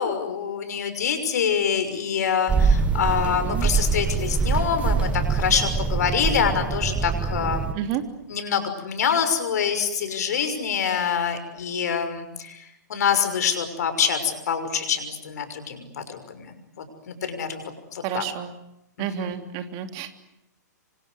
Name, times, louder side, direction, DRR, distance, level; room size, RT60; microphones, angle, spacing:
voice 1, 0.0-7.7 8.3-12.6 12.9-17.7 18.1-18.2 19.0-19.3, left 7 dB, 65° left, 9 dB, 6.1 m, -25 dB
sound 1, 2.5-7.7, right 5 dB, 15° right, 1.8 m, -24 dB
voice 2, 3.3-3.7 7.7-8.0 18.0-18.6 19.0-20.1, right 10 dB, 35° right, 7 dB, 3.2 m, -30 dB
28.5 x 25.0 x 8.0 m, 0.84 s
hypercardioid pair, 125°, 10 cm